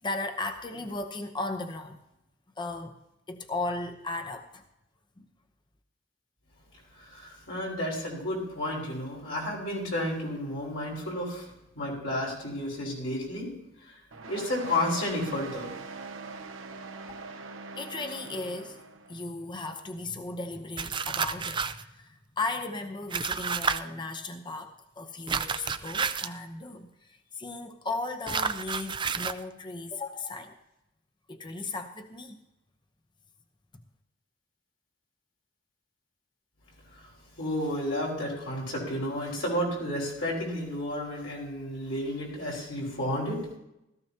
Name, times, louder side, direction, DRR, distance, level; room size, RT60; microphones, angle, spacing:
voice 1, 0.0-2.0 2.6-3.0 3.3-4.6 5.2-5.3 17.8-18.8 19.1-30.5 31.3-32.4, left 2 dB, 25° left, 6 dB, 0.8 m, -36 dB
voice 2, 6.9-13.5 13.8-14.0 14.3-15.7 36.9-37.0 37.4-43.4, left 1 dB, 70° left, -4 dB, 5.0 m, -32 dB
sound 1, 14.1-19.2, right 4 dB, 80° right, 1.0 m, -42 dB
sound 2, 20.8-21.8 23.1-23.8 25.3-26.4 28.3-29.4, right 5 dB, 25° right, 0.4 m, -30 dB
17.5 x 14.0 x 2.9 m, 0.86 s
head